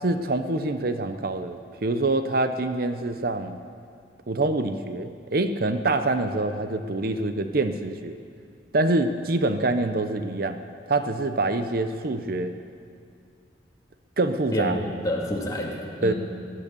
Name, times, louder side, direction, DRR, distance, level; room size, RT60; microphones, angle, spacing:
voice 1, 0.0-3.6 4.3-8.2 8.7-10.6 10.9-12.5 14.2-14.7 16.0-16.1, right 2 dB, 60° right, 9 dB, 0.7 m, -25 dB
voice 2, 14.5-16.1, equal, 20° left, -2 dB, 2.3 m, -28 dB
18.5 x 11.5 x 6.8 m, 2.3 s
head